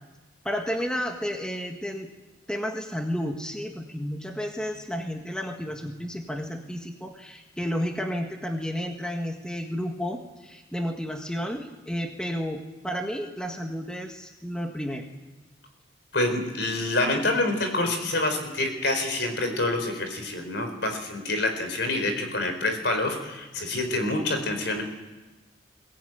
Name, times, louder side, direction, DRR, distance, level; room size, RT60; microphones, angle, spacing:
voice 1, 0.4-2.1 2.5-15.0, equal, 5° left, 3 dB, 1.6 m, -32 dB
voice 2, 16.1-24.8, left 2 dB, 65° left, 6 dB, 4.5 m, -27 dB
22.5 x 18.0 x 9.3 m, 1.1 s
head